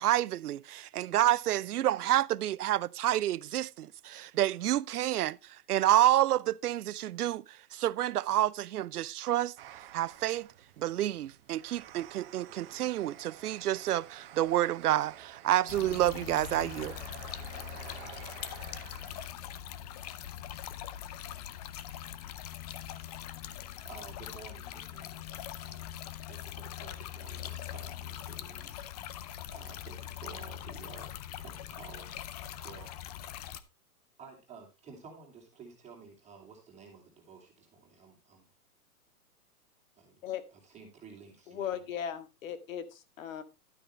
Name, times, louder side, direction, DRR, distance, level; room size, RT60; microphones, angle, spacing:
voice 1, 0.0-5.4 5.7-9.5 9.9-10.5 10.8-17.0, right 13 dB, 75° right, 0.6 m, -29 dB
sound 1, 9.6-19.3, right 12 dB, 40° right, 1.3 m, -50 dB
sound 2, 15.7-33.6, left 11 dB, 25° left, 0.6 m, -42 dB
voice 2, 23.8-25.2 25.5-26.0 26.3-32.2 32.5-32.9 34.2-38.5 40.0-40.2 40.5-41.8, right 5 dB, 15° right, 2.9 m, -52 dB
voice 3, 41.5-43.4, left 9 dB, 60° left, 1.9 m, -37 dB
12.0 x 8.8 x 3.2 m
hypercardioid pair, 140°, 45 cm